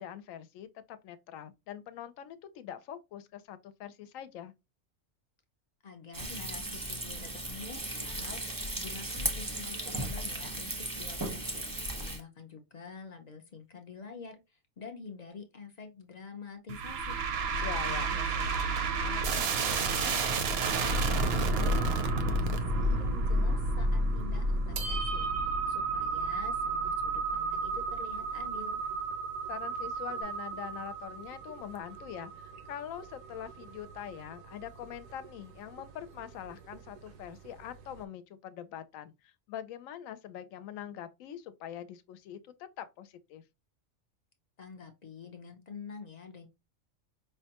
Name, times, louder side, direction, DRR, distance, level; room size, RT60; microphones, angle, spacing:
voice 1, 0.0-4.5 17.6-18.2 29.5-43.4, left 10 dB, 85° left, 1.0 m, -43 dB
voice 2, 5.8-17.2 17.6-20.2 20.8-21.2 21.5-28.8 44.6-46.5, left 4 dB, 50° left, 0.5 m, -47 dB
Frying (food), 6.1-12.2, right 1 dB, 20° right, 0.6 m, -36 dB
sound 1, 16.7-28.0, right 2 dB, 60° right, 0.7 m, -30 dB
sound 2, 21.6-38.0, right 5 dB, 85° right, 1.0 m, -37 dB
5.1 x 2.2 x 2.8 m
omnidirectional pair, 1.3 m